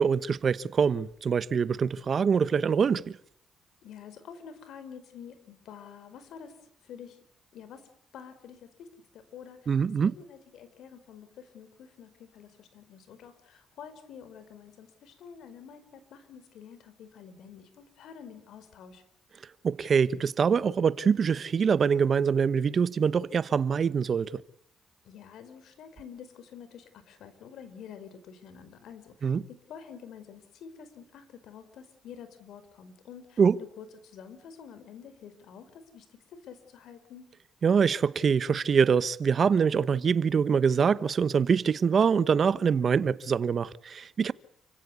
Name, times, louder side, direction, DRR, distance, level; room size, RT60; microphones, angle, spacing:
voice 1, 0.0-3.2 9.7-10.1 19.6-24.4 29.2-29.4 33.4-33.6 37.6-44.3, right 6 dB, 50° right, 0.9 m, -24 dB
voice 2, 3.8-6.6 6.8-7.2 7.5-7.9 8.1-9.7 10.0-19.0 25.0-33.4 33.8-37.2, left 7 dB, 75° left, 4.8 m, -48 dB
29.5 x 16.5 x 8.3 m
cardioid pair, 90°, 0 cm